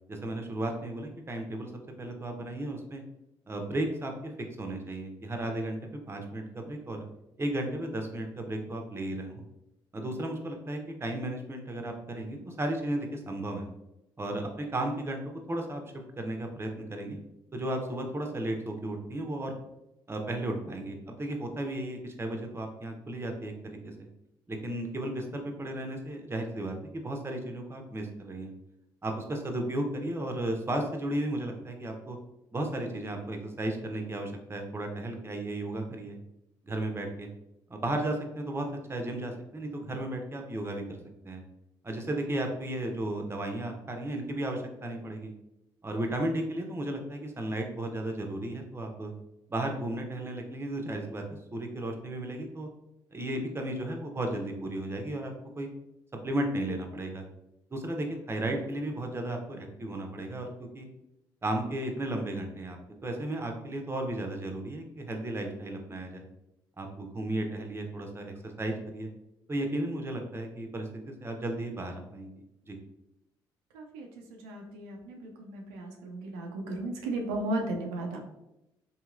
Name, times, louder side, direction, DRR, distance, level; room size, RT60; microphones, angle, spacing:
voice 1, 0.1-1.7 2.0-3.0 3.5-4.3 4.6-7.0 7.4-9.4 9.9-13.7 14.2-15.8 16.2-17.2 17.5-19.5 20.1-24.1 24.5-28.5 29.0-32.2 32.5-36.2 36.6-37.3 37.7-41.0 41.2-41.4 41.8-45.3 45.8-49.1 49.5-51.2 51.5-52.7 53.1-55.7 56.2-57.2 57.7-60.9 61.4-66.2 66.8-69.1 69.5-72.3 72.7-72.8, right 1 dB, 25° right, 3 dB, 0.7 m, -34 dB
voice 2, 73.7-78.2, right 2 dB, 90° right, 1 dB, 0.4 m, -35 dB
3.0 x 2.7 x 2.4 m, 0.88 s
hypercardioid pair, 50°, 10 cm